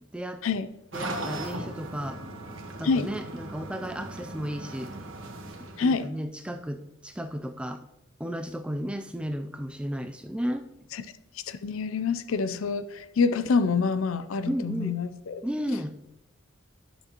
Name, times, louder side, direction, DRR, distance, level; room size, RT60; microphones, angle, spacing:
voice 1, 0.1-0.4 0.9-2.2 2.8-4.9 5.6-7.8 8.2-10.6 14.5-15.0 15.4-16.0, equal, 5° right, 7 dB, 0.4 m, -33 dB
sound 1, 0.9-6.0, right 1 dB, 65° right, 1.4 m, -38 dB
voice 2, 5.8-6.1 10.9-11.0 11.5-15.4, left 4 dB, 75° left, 12 dB, 0.5 m, -26 dB
11.5 x 6.4 x 3.0 m, 0.92 s
head